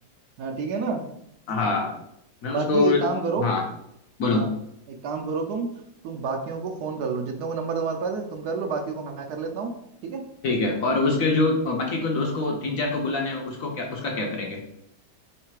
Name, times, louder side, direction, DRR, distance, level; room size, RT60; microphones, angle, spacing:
voice 1, 0.4-1.1 2.4-3.5 4.3-4.5 4.9-5.7 6.0-9.7 10.0-10.2, right 4 dB, 70° right, 3 dB, 1.1 m, -29 dB
voice 2, 1.5-1.9 2.4-3.0 3.4-3.6 4.2-4.5 10.4-14.6, left 3 dB, 65° left, 1 dB, 0.9 m, -24 dB
3.2 x 3.2 x 4.6 m, 0.78 s
omnidirectional pair, 1.9 m